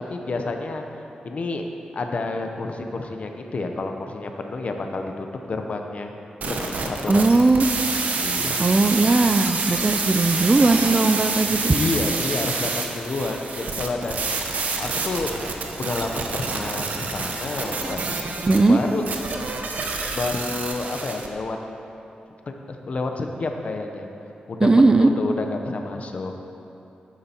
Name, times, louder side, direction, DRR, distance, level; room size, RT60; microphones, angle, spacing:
voice 1, 0.1-0.8 1.2-1.6 1.9-6.1 6.4-7.4 8.2-8.6 11.5-14.2 14.8-15.3 15.8-18.2 18.7-19.4 20.1-21.6 22.5-24.1 24.5-26.3, left 3 dB, 50° left, 4 dB, 0.9 m, -29 dB
sound 1, 6.4-21.3, right 4 dB, 65° right, 0.9 m, -28 dB
voice 2, 7.1-7.7 8.6-11.7 18.5-18.8 24.6-25.1, right 3 dB, 25° right, 8 dB, 0.4 m, -18 dB
11.5 x 8.8 x 4.4 m, 2.9 s
wide cardioid pair, 120°, 3 cm